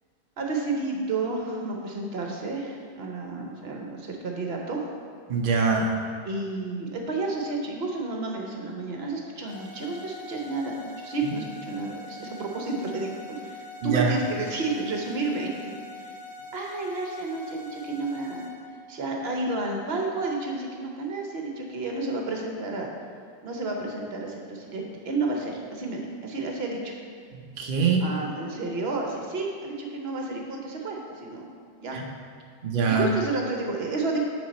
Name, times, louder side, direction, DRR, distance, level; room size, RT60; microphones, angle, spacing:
voice 1, 0.4-4.8 6.2-15.8 16.5-18.5 18.9-22.9 23.4-26.9 28.0-31.5 31.8-32.0 32.8-34.2, right 3 dB, 45° right, 1 dB, 0.9 m, -31 dB
voice 2, 5.3-5.9 11.2-11.3 13.8-14.1 27.3-28.1 31.9-32.0 32.6-33.1, right 5 dB, 75° right, 0 dB, 0.4 m, -24 dB
sound 1, 9.5-18.5, left 2 dB, 65° left, 1.8 m, -43 dB
7.1 x 6.2 x 4.2 m, 2.1 s
omnidirectional pair, 1.8 m